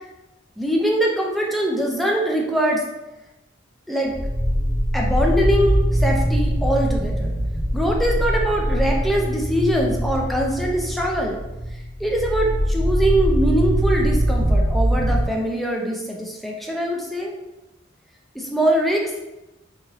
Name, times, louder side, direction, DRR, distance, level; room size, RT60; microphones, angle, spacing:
voice 1, 0.6-2.8 3.9-4.1 4.9-7.3 7.7-11.4 12.0-17.3 18.3-19.1, right 1 dB, ahead, -1 dB, 0.4 m, -22 dB
sound 1, 4.1-15.2, equal, 60° right, 0.8 m, -22 dB
3.9 x 2.6 x 2.9 m, 1.0 s
head